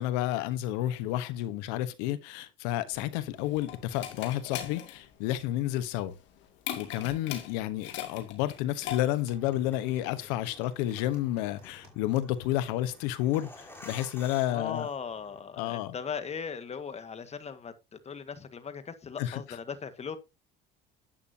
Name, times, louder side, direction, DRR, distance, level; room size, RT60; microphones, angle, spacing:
voice 1, 0.0-6.1 6.8-14.9 15.6-15.9 19.2-19.4, left 14 dB, 90° left, 1.1 m, -31 dB
sound 1, 2.9-9.4, left 11 dB, 70° left, 2.5 m, -40 dB
sound 2, 9.0-12.2 12.5-12.6 12.9-13.0, right 6 dB, 55° right, 6.4 m, -59 dB
sound 3, 9.2-15.4, left 1 dB, 10° left, 4.0 m, -51 dB
voice 2, 14.5-20.2, left 6 dB, 35° left, 1.7 m, -38 dB
11.5 x 8.6 x 2.8 m
supercardioid pair, 100°, 20 cm